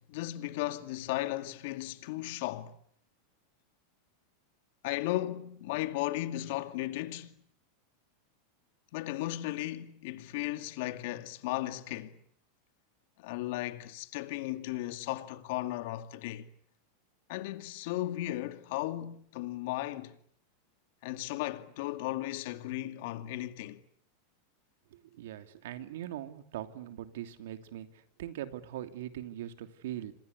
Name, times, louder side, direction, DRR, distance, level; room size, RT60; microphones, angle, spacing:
voice 1, 0.0-2.8 4.8-7.4 8.9-12.2 13.2-16.5 17.3-20.2 21.0-23.8, left 16 dB, 65° left, 2.3 m, -35 dB
voice 2, 24.9-27.9 28.2-30.1, right 12 dB, 75° right, 3.0 m, -41 dB
27.0 x 25.5 x 8.4 m
supercardioid pair, 130°, 0 cm